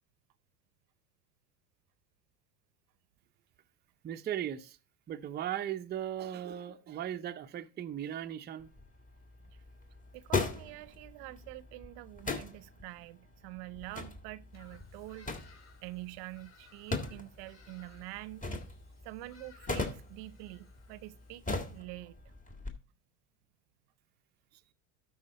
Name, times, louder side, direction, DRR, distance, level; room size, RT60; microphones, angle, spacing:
voice 1, 4.0-4.8 5.1-8.7, right 10 dB, 25° right, 0.6 m, -37 dB
sound 1, 8.6-22.7, left 3 dB, 15° left, 1.7 m, -40 dB
voice 2, 10.1-18.5 19.0-21.5 21.7-22.2, right 18 dB, 60° right, 0.7 m, -46 dB
Bird vocalization bird call bird song, 14.5-21.8, left 5 dB, 35° left, 3.6 m, -61 dB
12.5 x 5.0 x 4.0 m
supercardioid pair, 100°, 45 cm